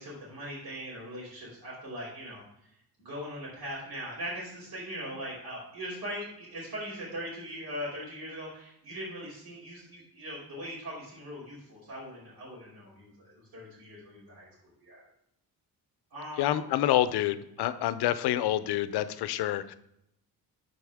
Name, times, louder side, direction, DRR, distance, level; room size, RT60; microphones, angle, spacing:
voice 1, 0.0-14.5 14.8-15.0 16.1-16.7 17.6-17.7, equal, 70° right, -9 dB, 2.8 m, -40 dB
voice 2, 16.4-19.7, left 13 dB, 90° left, 14 dB, 0.6 m, -27 dB
11.0 x 4.2 x 3.5 m, 0.78 s
cardioid pair, 155°, 38 cm